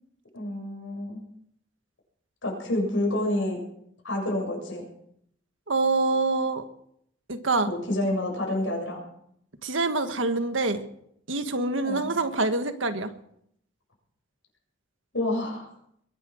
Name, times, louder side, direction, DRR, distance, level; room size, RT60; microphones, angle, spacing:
voice 1, 0.3-1.2 2.4-3.6 4.0-4.8 7.6-9.0 11.8-12.2 15.1-15.7, left 1 dB, 80° left, 0 dB, 7.3 m, -28 dB
voice 2, 5.7-6.6 7.3-7.7 9.6-10.8 11.3-13.1, right 3 dB, 80° right, 8 dB, 1.6 m, -25 dB
22.0 x 10.0 x 6.3 m, 0.71 s
head